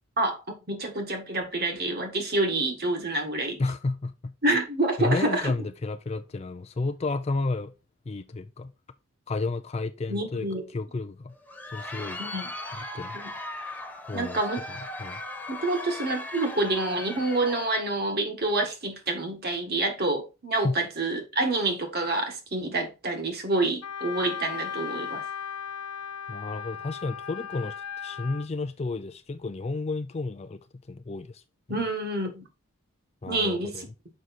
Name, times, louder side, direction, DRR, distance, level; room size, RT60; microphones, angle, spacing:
voice 1, 0.7-3.6 4.4-5.5 10.1-10.6 12.2-12.5 13.1-13.3 14.1-14.6 15.5-25.2 31.7-32.4 33.3-33.9, right 2 dB, 45° right, 1.5 m, -27 dB
voice 2, 3.6-4.3 5.0-7.7 8.1-8.7 9.3-11.3 11.7-12.2 12.7-13.2 14.1-14.4 15.0-15.2 20.6-20.8 26.3-27.8 28.0-30.6 30.9-31.4 31.7-31.8 33.2-33.9, left 3 dB, 30° left, 0.4 m, -31 dB
Crowd, 11.3-17.9, left 2 dB, 10° left, 1.2 m, -38 dB
Wind instrument woodwind instrument, 23.8-28.5, left 8 dB, 85° left, 0.5 m, -36 dB
6.3 x 5.2 x 4.1 m
head